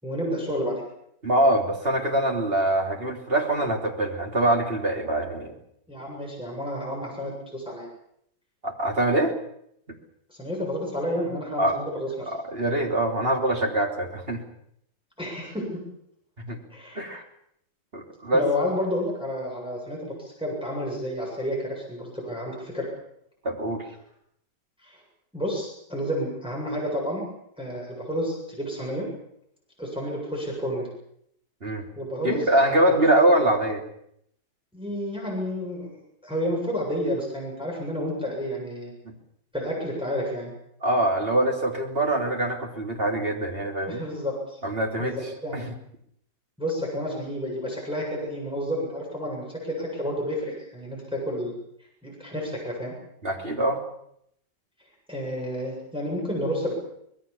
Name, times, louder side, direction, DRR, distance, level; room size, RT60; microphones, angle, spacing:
voice 1, 0.0-0.8 5.9-7.9 10.3-12.3 15.2-15.8 16.7-17.1 18.3-22.9 24.8-25.0 25.3-27.3 27.6-29.1 29.8-30.9 32.0-32.5 32.9-33.0 34.7-36.0 36.2-38.9 39.5-40.5 43.9-44.6 45.0-45.8 46.6-51.5 52.0-52.9 55.1-56.7, equal, 5° right, -2 dB, 7.8 m, -30 dB
voice 2, 1.2-5.5 8.6-9.3 11.6-11.8 12.3-14.4 16.5-16.6 16.9-17.2 17.9-18.4 23.4-23.8 31.6-31.8 32.2-33.8 39.0-39.1 40.8-44.1 44.6-45.2 45.5-45.6 53.2-53.8, right 1 dB, 30° right, 2 dB, 3.4 m, -24 dB
25.5 x 20.5 x 7.2 m, 0.72 s
omnidirectional pair, 1.9 m